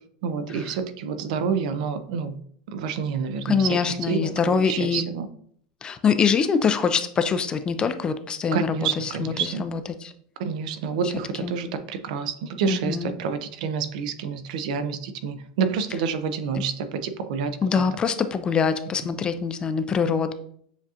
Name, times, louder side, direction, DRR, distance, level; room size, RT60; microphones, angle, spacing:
voice 1, 0.2-2.4 2.7-4.3 4.7-5.3 8.5-9.7 10.4-17.9, right 6 dB, 70° right, 10 dB, 0.5 m, -28 dB
voice 2, 3.4-5.0 5.8-10.1 11.4-11.5 12.7-13.1 17.6-20.3, left 6 dB, 20° left, 11 dB, 0.3 m, -24 dB
7.0 x 2.4 x 2.8 m, 0.62 s
supercardioid pair, 140°, 4 cm